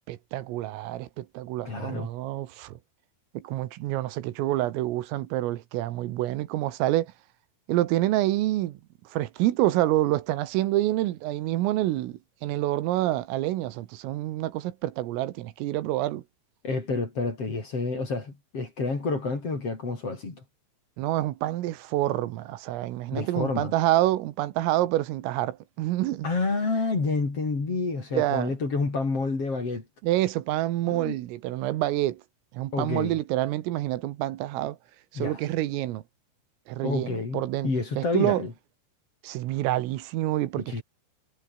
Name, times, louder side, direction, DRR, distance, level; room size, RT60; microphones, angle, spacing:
voice 1, 0.1-2.7 3.4-7.1 7.7-8.8 9.1-16.2 21.0-26.3 28.1-28.5 30.0-32.2 32.5-34.8 35.1-36.0 36.7-38.4 39.2-40.8, right 15 dB, 80° right, 4.0 m, -27 dB
voice 2, 1.6-2.1 16.6-20.4 23.1-23.7 26.2-29.8 30.9-31.2 32.7-33.2 35.1-35.4 36.8-38.5 40.6-40.8, left 3 dB, 30° left, 5.1 m, -29 dB
omnidirectional pair, 5.9 m